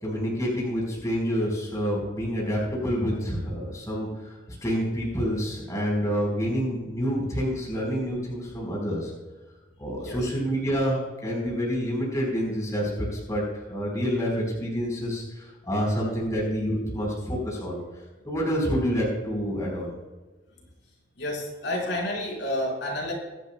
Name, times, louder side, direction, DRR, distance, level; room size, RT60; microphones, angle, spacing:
voice 1, 0.0-9.1 9.8-17.8 18.2-19.9, equal, 15° left, -3 dB, 4.1 m, -28 dB
voice 2, 21.2-23.1, left 1 dB, 65° left, -2 dB, 4.5 m, -30 dB
22.0 x 12.0 x 2.2 m, 1.2 s
head